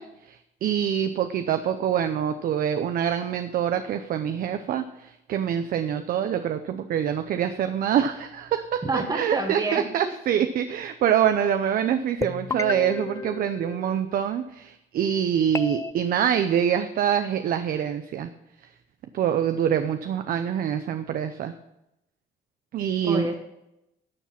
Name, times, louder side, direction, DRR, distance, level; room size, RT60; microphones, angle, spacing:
voice 1, 0.0-8.8 9.1-18.3 19.1-21.5 22.7-23.3, right 9 dB, 60° right, 8 dB, 0.7 m, -25 dB
voice 2, 8.8-10.1 23.0-23.3, right 3 dB, 25° right, 1 dB, 1.4 m, -28 dB
sound 1, 12.2-14.3 15.5-15.9, left 4 dB, 20° left, 0.3 m, -32 dB
13.0 x 7.2 x 5.8 m, 0.87 s
cardioid pair, 110°, 17 cm